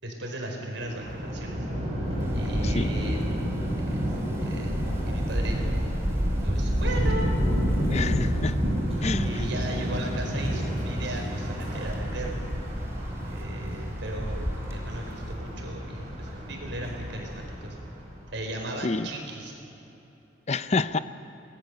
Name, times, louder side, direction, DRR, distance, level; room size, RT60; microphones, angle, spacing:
voice 1, 0.0-1.7 2.3-3.3 3.8-4.1 4.4-4.7 5.0-5.7 6.4-7.3 9.2-12.4 13.3-17.8 18.3-19.6, right 1 dB, 70° right, 1 dB, 4.6 m, -36 dB
Thunder, 0.8-18.2, equal, 30° right, 6.1 m, -30 dB
Wind, 2.2-15.3, equal, 15° right, 2.3 m, -32 dB
voice 2, 7.9-8.6 9.0-9.3 18.8-19.1 20.5-21.0, left 3 dB, 35° left, 13 dB, 0.6 m, -27 dB
27.0 x 19.0 x 6.7 m, 3.0 s
head